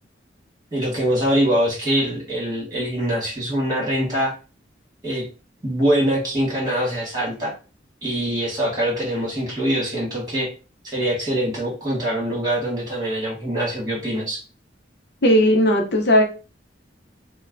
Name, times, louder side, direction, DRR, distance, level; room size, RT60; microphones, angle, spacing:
voice 1, 0.7-4.3 5.0-5.2 5.6-7.5 8.0-10.5 10.8-14.4, right 1 dB, 20° right, -4 dB, 1.6 m, -23 dB
voice 2, 15.2-16.2, equal, 60° left, 3 dB, 0.6 m, -16 dB
5.3 x 2.1 x 2.5 m, 0.34 s
head